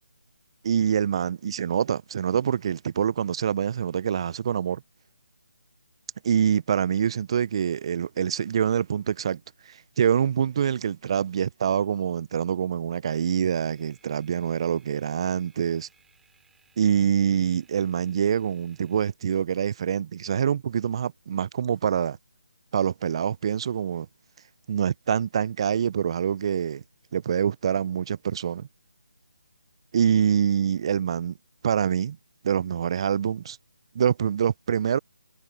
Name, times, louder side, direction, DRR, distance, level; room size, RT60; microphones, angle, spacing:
voice 1, 0.6-4.8 6.2-9.4 9.7-15.9 16.8-22.2 22.7-24.1 24.7-26.8 27.1-28.7 29.9-31.3 31.6-32.2 32.4-33.6 33.9-35.0, right 8 dB, 35° right, 0.4 m, -25 dB
sound 1, 13.1-19.9, right 6 dB, 5° right, 6.5 m, -64 dB
figure-of-eight pair, 155°, 5 cm